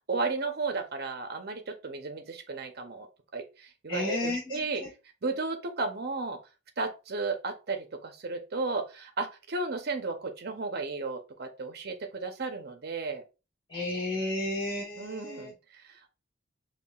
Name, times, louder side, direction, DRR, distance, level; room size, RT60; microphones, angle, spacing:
voice 1, 0.1-3.1 3.3-4.8 5.2-6.4 6.8-13.2 15.0-16.1, right 3 dB, 55° right, 5 dB, 0.7 m, -34 dB
voice 2, 3.9-4.9 13.7-15.5, left 2 dB, 25° left, -7 dB, 1.1 m, -32 dB
5.5 x 2.4 x 2.3 m, 0.29 s
head